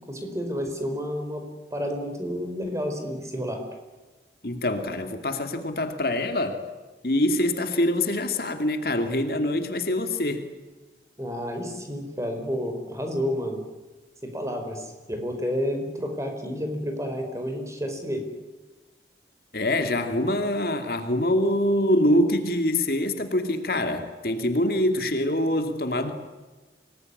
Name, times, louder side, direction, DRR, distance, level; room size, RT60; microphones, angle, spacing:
voice 1, 0.1-1.4 1.7-3.6 11.2-13.6 14.2-18.2, equal, 15° right, 5 dB, 4.8 m, -30 dB
voice 2, 4.4-6.6 7.0-10.5 19.5-26.1, left 1 dB, 55° left, 6 dB, 2.6 m, -24 dB
26.5 x 19.5 x 9.9 m, 1.3 s
head